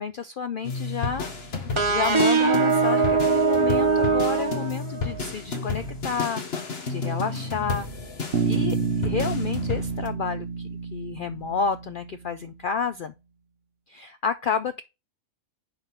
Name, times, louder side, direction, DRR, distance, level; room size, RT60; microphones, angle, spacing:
voice 1, 0.0-1.3 1.9-7.9 8.4-8.8 9.0-10.5 10.9-13.1 13.9-14.8, left 6 dB, 75° left, 0.4 m, -30 dB
sound 1, 0.6-10.1, left 3 dB, 50° left, 1.4 m, -32 dB
sound 2, 1.8-5.3, right 4 dB, 25° right, 1.0 m, -22 dB
Bass guitar, 8.3-12.4, right 5 dB, 50° right, 0.9 m, -29 dB
8.0 x 3.7 x 5.7 m
omnidirectional pair, 1.4 m